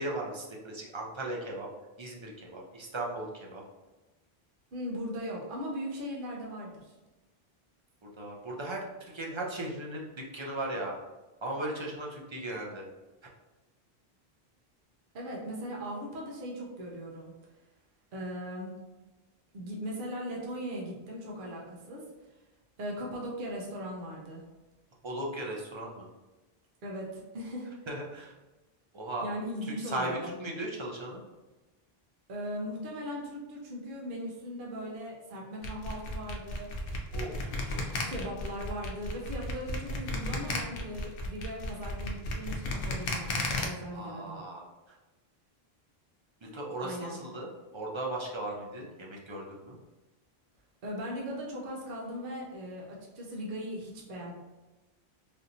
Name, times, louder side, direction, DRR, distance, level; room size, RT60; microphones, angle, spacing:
voice 1, 0.0-1.7 2.0-3.6 8.2-8.8 9.1-10.9 11.4-12.9 25.0-26.1 27.9-28.3 28.9-29.3 29.7-31.2 37.1-38.2 43.9-44.9 46.4-49.8, right 1 dB, 40° right, -2 dB, 0.5 m, -37 dB
voice 2, 4.7-6.9 15.1-17.3 18.1-18.7 19.5-22.1 22.8-24.4 26.8-27.7 29.2-30.4 32.3-36.7 38.1-44.4 46.8-47.2 50.8-54.3, equal, 60° right, -2 dB, 0.9 m, -38 dB
sound 1, 35.6-43.6, left 2 dB, 65° left, 0.8 m, -34 dB
3.4 x 2.8 x 2.6 m, 1.1 s
omnidirectional pair, 1.1 m